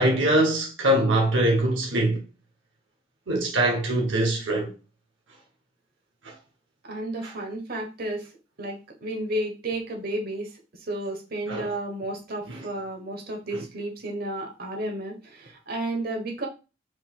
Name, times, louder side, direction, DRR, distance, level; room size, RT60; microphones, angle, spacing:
voice 1, 0.0-2.2 3.3-4.7 11.5-11.7, right 1 dB, 75° right, 1.0 m, -22 dB
voice 2, 6.8-8.3 8.6-16.5, right 1 dB, 50° right, 1.1 m, -32 dB
4.6 x 3.8 x 2.3 m
head